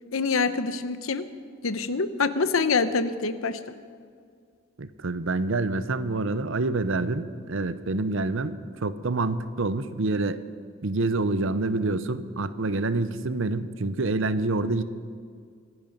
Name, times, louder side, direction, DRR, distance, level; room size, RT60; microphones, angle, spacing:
voice 1, 0.1-1.3 1.6-3.6, left 4 dB, 85° left, 12 dB, 0.9 m, -25 dB
voice 2, 4.8-10.4 10.8-14.8, right 3 dB, 65° right, 13 dB, 0.8 m, -27 dB
24.5 x 11.0 x 5.4 m, 2.1 s
head